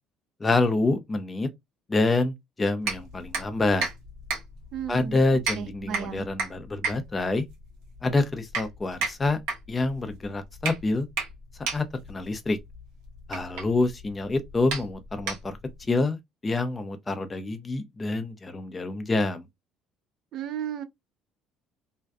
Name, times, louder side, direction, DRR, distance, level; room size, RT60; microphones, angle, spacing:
voice 1, 0.4-1.5 1.9-3.9 4.9-7.5 8.0-9.4 9.7-11.1 11.7-12.6 13.3-19.5, left 2 dB, 20° left, 0.4 m, -27 dB
sound 1, 2.8-15.8, right 4 dB, 90° right, 1.0 m, -35 dB
voice 2, 4.7-6.3 20.3-20.8, right 8 dB, 55° right, 0.5 m, -35 dB
2.5 x 2.2 x 2.3 m
cardioid pair, 125°, 0 cm